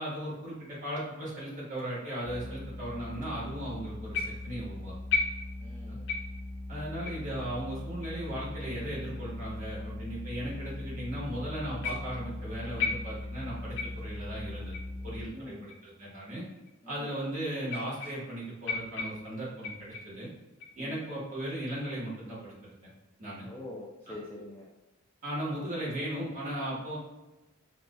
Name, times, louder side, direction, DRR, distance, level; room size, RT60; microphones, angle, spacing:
voice 1, 0.0-4.9 5.9-6.0 6.7-14.7 15.0-16.4 16.9-20.3 20.7-22.5 23.2-23.5 25.2-27.0, right 1 dB, 35° right, -7 dB, 1.3 m, -37 dB
sound 1, 2.2-15.3, left 2 dB, 5° right, 1.5 m, -40 dB
sound 2, 4.1-4.6 5.1-5.8 6.1-6.5 7.0-7.2 8.0-8.1 9.0-9.1 10.0-10.1 11.8-12.3 12.8-13.4 13.8-14.2 14.7-14.9 15.7-15.8 16.7-16.8 17.6-18.4 18.7-20.2 20.6-21.0 21.6-21.9, left 4 dB, 60° left, 0.6 m, -35 dB
voice 2, 5.6-6.1 15.3-15.7 16.8-17.1 20.8-21.0 23.5-24.7, left 1 dB, 10° left, -4 dB, 0.3 m, -44 dB
4.5 x 2.4 x 2.2 m, 1.1 s
head